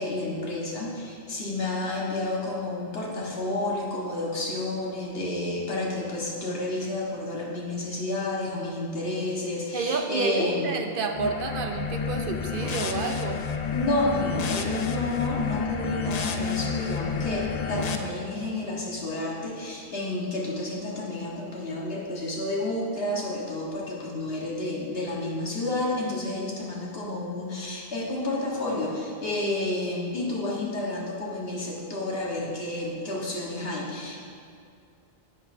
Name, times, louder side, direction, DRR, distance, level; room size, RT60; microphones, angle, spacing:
voice 1, 0.0-10.7 13.7-34.2, left 2 dB, 70° left, -4 dB, 1.6 m, -30 dB
voice 2, 9.7-13.5, right 4 dB, 65° right, 5 dB, 0.7 m, -29 dB
sound 1, 11.1-18.0, left 5 dB, 50° left, 0.5 m, -30 dB
9.9 x 8.2 x 2.7 m, 2.5 s
omnidirectional pair, 1.0 m